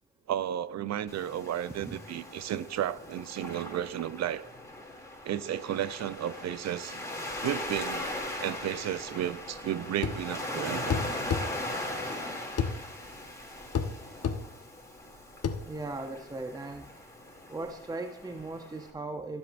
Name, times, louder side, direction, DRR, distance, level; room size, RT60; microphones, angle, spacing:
voice 1, 0.3-4.4 5.2-7.0 7.4-8.1 8.4-11.0, right 11 dB, 60° right, 0.6 m, -33 dB
Waves surf, 1.1-18.9, left 1 dB, 10° left, 2.7 m, -39 dB
sound 1, 10.0-10.2 10.9-11.5 12.6-12.8 13.7-13.9 14.2-14.4 15.4-15.6, left 6 dB, 55° left, 1.1 m, -28 dB
voice 2, 15.6-16.9 17.5-19.4, right 2 dB, 15° right, 0.7 m, -38 dB
21.5 x 7.8 x 2.6 m
cardioid pair, 90°, 30 cm